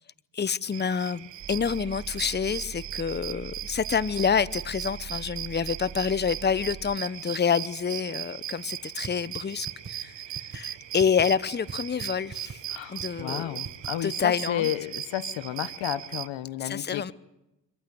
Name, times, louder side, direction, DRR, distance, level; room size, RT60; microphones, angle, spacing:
voice 1, 0.3-10.1 10.5-12.6 12.9-13.6 14.0-14.7 16.6-17.1, left 6 dB, 25° left, 0.8 m, -27 dB
sound 1, 0.7-16.3, right 13 dB, 75° right, 1.0 m, -38 dB
sound 2, 1.4-7.0, right 7 dB, 55° right, 1.3 m, -43 dB
sound 3, 9.0-9.1 9.4-9.5 9.7-9.9 10.3-10.6 11.0-11.2 11.7-11.8 12.0-12.1 12.3-12.6 13.0-13.2 13.6-13.9, right 6 dB, 30° right, 1.5 m, -39 dB
voice 2, 12.7-17.1, left 12 dB, 85° left, 1.1 m, -32 dB
25.5 x 15.0 x 9.9 m
cardioid pair, 65°, 44 cm